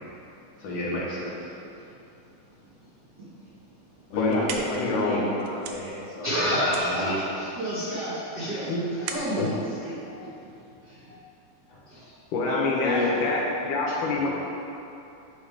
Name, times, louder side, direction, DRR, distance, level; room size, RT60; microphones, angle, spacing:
voice 1, 0.6-1.5 4.1-7.4 11.7-11.8 12.4-13.3 13.6-13.8 14.1-14.3, left 2 dB, 60° left, -7 dB, 2.2 m, -30 dB
sound 1, 4.0-10.9, right 5 dB, 85° right, 1.5 m, -41 dB
voice 2, 4.8-5.3 8.7-8.9 9.3-9.5 12.3-14.3, left 3 dB, 80° left, -2 dB, 2.4 m, -27 dB
voice 3, 6.2-8.7 9.0-9.5 9.8-10.4 10.9-11.2 11.9-12.1, equal, 60° right, -11 dB, 1.1 m, -29 dB
9.2 x 3.2 x 4.9 m, 2.8 s
omnidirectional pair, 3.7 m